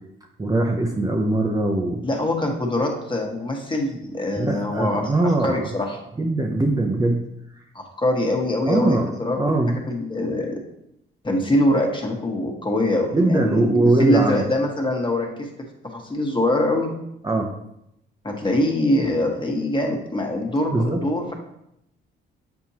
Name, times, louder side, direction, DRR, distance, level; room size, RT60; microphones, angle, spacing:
voice 1, 0.4-2.0 4.4-5.7 6.2-7.3 8.7-9.7 13.1-14.4 17.2-17.5 20.7-21.0, right 2 dB, 20° right, 1 dB, 0.7 m, -21 dB
voice 2, 2.0-6.0 7.7-9.4 9.9-10.6 11.2-15.5 15.9-16.9 18.2-21.3, left 1 dB, 25° left, 1 dB, 1.4 m, -23 dB
7.4 x 4.4 x 2.9 m, 0.79 s
cardioid pair, 90°, 20 cm